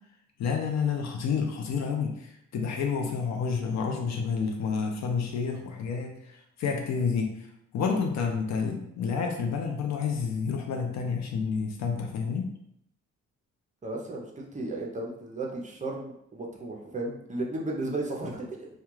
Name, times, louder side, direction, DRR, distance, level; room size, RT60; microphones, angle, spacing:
voice 1, 0.4-7.4 7.7-12.5, left 5 dB, 60° left, 3 dB, 0.5 m, -29 dB
voice 2, 13.8-18.7, right 2 dB, 25° right, -1 dB, 0.5 m, -34 dB
2.3 x 2.2 x 3.0 m, 0.74 s
cardioid pair, 90°, 30 cm